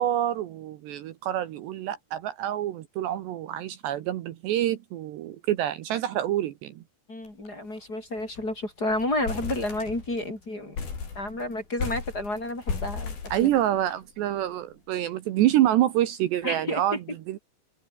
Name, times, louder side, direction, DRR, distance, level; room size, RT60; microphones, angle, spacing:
voice 1, 0.0-6.8 13.3-17.0 17.3-17.4, right 12 dB, 70° right, 3.2 m, -27 dB
voice 2, 7.1-10.8 11.1-13.5 16.4-17.2, left 1 dB, 20° left, 5.8 m, -31 dB
sound 1, 7.3-7.5 7.8-7.9 8.2-8.5 8.9-10.3 10.7-14.0, left 5 dB, 50° left, 7.0 m, -35 dB
open air
omnidirectional pair, 5.4 m